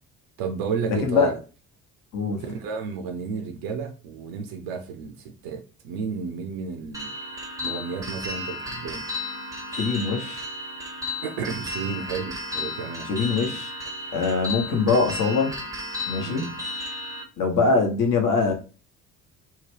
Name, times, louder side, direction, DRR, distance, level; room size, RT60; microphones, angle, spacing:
voice 1, 0.4-1.4 2.4-7.1 7.6-9.0 11.2-13.1 16.2-16.6, right 5 dB, 55° right, 0.6 m, -32 dB
voice 2, 1.0-1.3 2.1-2.4 9.7-10.4 13.1-13.7 14.1-15.5 16.1-16.5 17.4-18.5, left 4 dB, 45° left, 1.0 m, -23 dB
sound 1, 6.9-17.2, left 2 dB, 10° right, 0.7 m, -34 dB
2.8 x 2.1 x 3.2 m
figure-of-eight pair, 55°, 45 cm